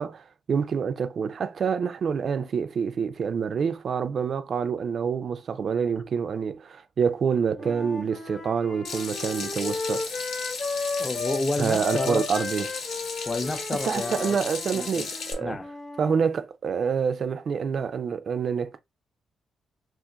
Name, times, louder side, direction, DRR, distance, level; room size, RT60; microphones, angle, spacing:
voice 1, 0.0-10.3 11.6-12.7 13.8-15.6 16.0-18.8, right 6 dB, 55° right, 0.3 m, -27 dB
Wind instrument woodwind instrument, 7.5-11.4 11.8-16.2, left 3 dB, 45° left, 0.8 m, -35 dB
Water tap faucet / Sink (filling or washing), 8.8-15.3, left 4 dB, 75° left, 0.9 m, -35 dB
voice 2, 11.0-12.3 13.3-14.4 14.7-15.1 15.4-15.7, left 2 dB, 25° left, 0.5 m, -30 dB
2.4 x 2.4 x 3.8 m
cardioid pair, 85°, 0 cm